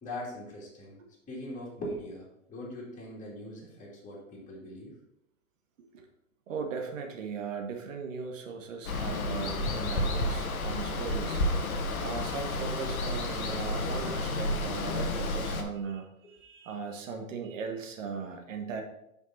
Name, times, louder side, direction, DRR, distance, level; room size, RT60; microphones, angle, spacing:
voice 1, 0.0-1.0 1.3-4.9, left 1 dB, 15° left, -5 dB, 2.3 m, -41 dB
voice 2, 6.5-11.4 12.0-18.8, right 5 dB, 60° right, 4 dB, 1.3 m, -38 dB
Water, 8.8-15.6, left 2 dB, 75° left, 1.1 m, -31 dB
5.4 x 5.3 x 4.1 m, 0.83 s
hypercardioid pair, 110°, 44 cm